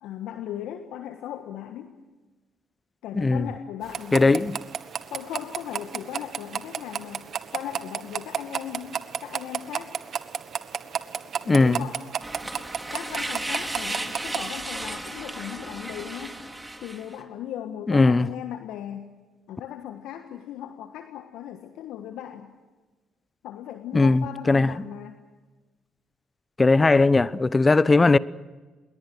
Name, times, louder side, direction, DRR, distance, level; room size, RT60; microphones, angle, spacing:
voice 1, 0.0-1.9 3.0-4.5 5.1-7.2 7.5-9.9 11.4-12.1 12.4-12.6 12.9-16.4 16.8-19.0 19.5-22.5 23.4-25.2, left 10 dB, 70° left, 1.5 m, -37 dB
sound 1, 3.8-14.5, right 8 dB, 55° right, 1.3 m, -34 dB
voice 2, 4.1-4.5 11.5-11.8 17.9-18.3 23.9-24.7 26.6-28.2, left 3 dB, 25° left, 1.0 m, -19 dB
sound 2, 12.2-17.1, right 1 dB, 15° right, 3.6 m, -34 dB
27.5 x 22.5 x 6.2 m
hypercardioid pair, 50°, 0 cm